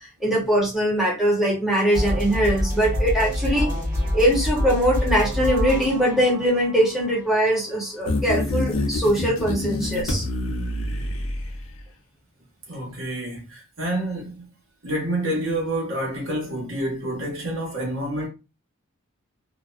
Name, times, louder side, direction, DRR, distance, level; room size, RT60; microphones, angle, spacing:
voice 1, 0.0-3.7 4.1-10.3, equal, ahead, 0.8 m, -22 dB
sound 1, 1.9-7.9, equal, 35° right, 1.3 m, -27 dB
sound 2, 8.1-11.8, left 1 dB, 65° left, 0.5 m, -26 dB
voice 2, 12.7-14.5 14.8-18.3, right 1 dB, 65° right, 1.1 m, -28 dB
2.5 x 2.1 x 2.4 m
head